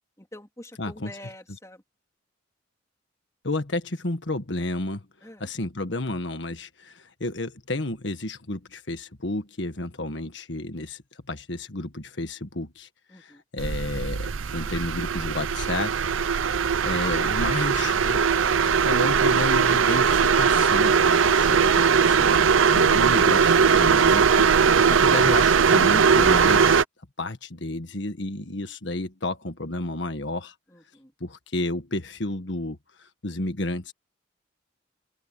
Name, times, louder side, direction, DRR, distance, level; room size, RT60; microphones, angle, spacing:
voice 1, 0.2-1.8 5.2-5.5 13.1-13.4 30.7-31.1, left 1 dB, 15° left, 3.6 m, -47 dB
voice 2, 0.8-1.1 3.4-5.0 5.4-11.0 11.3-16.1 16.8-18.2 18.6-24.5 24.9-26.8 27.2-30.5 31.2-33.9, left 2 dB, 70° left, 1.6 m, -31 dB
sound 1, 13.6-26.8, right 6 dB, 90° right, 0.6 m, -20 dB
open air
head